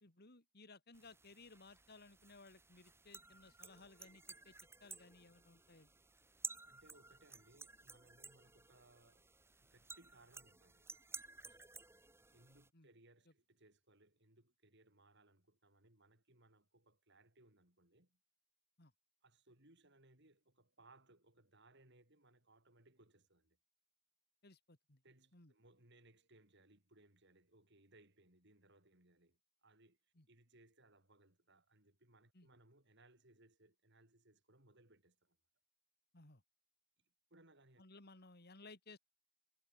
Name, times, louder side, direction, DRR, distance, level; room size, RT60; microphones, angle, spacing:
voice 1, 0.0-4.5 4.8-5.9 12.7-12.9 18.8-18.9 24.4-25.0 25.3-25.5 30.2-30.3 32.3-32.5 36.1-36.4 37.8-39.0, left 3 dB, 50° left, 2.8 m, -60 dB
sound 1, 0.9-12.7, right 4 dB, 10° right, 4.6 m, -54 dB
voice 2, 6.6-9.3 9.6-11.0 11.4-11.8 12.3-18.2 19.2-23.6 25.0-35.4 37.0-37.8, right 2 dB, 55° right, 7.8 m, -68 dB
head